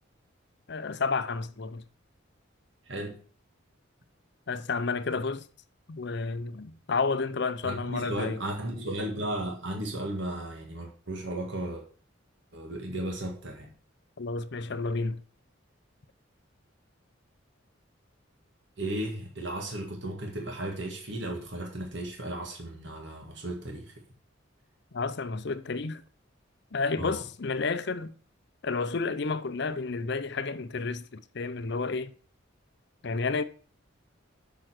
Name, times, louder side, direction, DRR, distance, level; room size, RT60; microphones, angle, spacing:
voice 1, 0.7-1.8 4.5-5.5 5.9-8.4 14.2-15.2 24.9-26.0 26.7-28.1 28.6-32.1 33.0-33.4, left 4 dB, 55° left, 0.6 m, -31 dB
voice 2, 2.8-3.2 7.6-11.8 12.5-13.7 18.8-23.9 27.0-27.2, right 1 dB, 60° right, 1.8 m, -35 dB
6.9 x 5.6 x 6.1 m
head